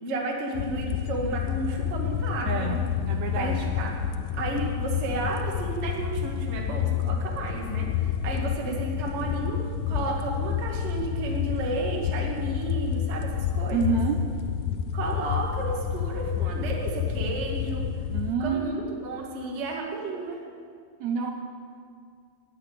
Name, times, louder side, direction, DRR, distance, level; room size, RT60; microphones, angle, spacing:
voice 1, 0.0-2.8 3.3-3.9 4.3-14.0 14.9-17.8 18.4-20.4, right 2 dB, 35° right, -1 dB, 1.2 m, -32 dB
sound 1, 0.5-18.3, left 9 dB, 80° left, 1.8 m, -29 dB
voice 2, 2.4-2.8 3.0-3.7 8.6-8.8 13.7-14.2 18.1-18.8 21.0-21.3, right 5 dB, 85° right, 4 dB, 1.6 m, -28 dB
19.5 x 6.6 x 8.2 m, 2.2 s
omnidirectional pair, 4.1 m